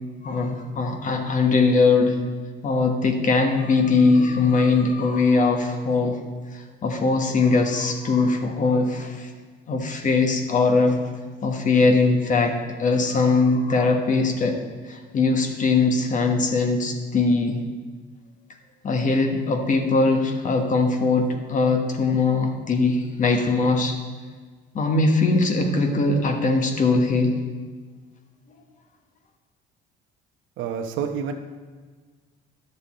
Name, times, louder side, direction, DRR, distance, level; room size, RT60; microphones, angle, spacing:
voice 1, 0.2-2.2 2.6-6.2 6.5-9.3 9.7-11.0 11.4-14.6 14.9-17.6 18.8-23.9 24.7-27.4, left 3 dB, 40° left, 4 dB, 1.3 m, -21 dB
voice 2, 30.6-31.3, right 7 dB, 75° right, 5 dB, 1.0 m, -28 dB
11.5 x 6.9 x 4.2 m, 1.5 s
cardioid pair, 115°, 20 cm